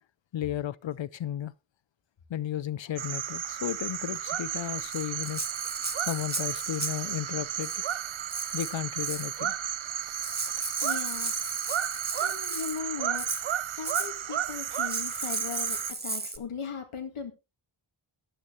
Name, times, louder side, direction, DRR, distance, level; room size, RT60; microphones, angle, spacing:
voice 1, 0.3-1.5 2.3-5.4 6.0-7.8 8.5-9.6, left 11 dB, 65° left, 0.6 m, -34 dB
sound 1, 3.0-15.9, right 10 dB, 70° right, 0.7 m, -33 dB
Rattle (instrument), 4.8-7.1 7.6-7.9 8.3-9.4 9.9-10.0 10.2-12.8 13.1-13.4 13.8-14.1 14.7-16.4, right 3 dB, 20° right, 0.9 m, -35 dB
voice 2, 10.6-13.3 13.7-17.3, left 6 dB, 80° left, 1.8 m, -39 dB
13.0 x 11.5 x 3.1 m
wide cardioid pair, 120°, 49 cm